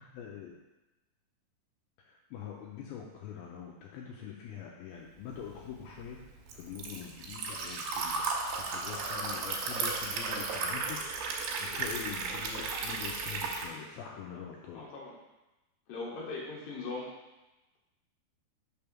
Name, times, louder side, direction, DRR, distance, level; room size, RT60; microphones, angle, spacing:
voice 1, 0.1-0.6 2.0-6.2 6.5-14.9, left 8 dB, 85° left, -1 dB, 2.2 m, -44 dB
Liquid, 5.4-13.7, right 4 dB, 75° right, 2.6 m, -35 dB
voice 2, 14.7-15.1 15.9-17.1, left 3 dB, 70° left, -4 dB, 2.4 m, -39 dB
5.9 x 3.5 x 5.8 m, 1.0 s
omnidirectional pair, 4.9 m